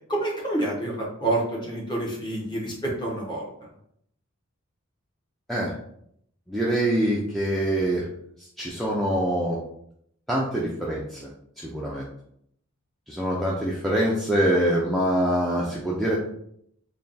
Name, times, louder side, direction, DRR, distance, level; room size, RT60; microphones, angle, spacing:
voice 1, 0.0-3.4, right 2 dB, 20° left, -3 dB, 0.9 m, -28 dB
voice 2, 6.5-8.0 8.6-9.6 10.3-11.3 11.6-12.0 13.1-16.2, right 1 dB, ahead, -5 dB, 0.4 m, -24 dB
3.4 x 2.2 x 3.9 m, 0.71 s
head